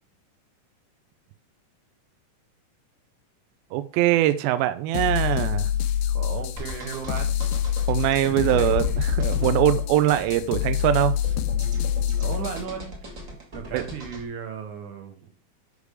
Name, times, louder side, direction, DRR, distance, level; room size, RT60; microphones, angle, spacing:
voice 1, 3.7-5.7 7.9-11.3 13.7-13.8, right 13 dB, 85° right, 11 dB, 2.4 m, -22 dB
sound 1, 4.9-12.6, left 10 dB, 85° left, 2.5 m, -26 dB
voice 2, 6.1-7.3 8.3-8.7 12.2-13.0 13.5-15.3, right 7 dB, 65° right, 5 dB, 2.2 m, -35 dB
sound 2, 6.6-14.2, left 2 dB, 45° right, 1.0 m, -37 dB
6.8 x 5.1 x 4.8 m, 0.43 s
omnidirectional pair, 4.3 m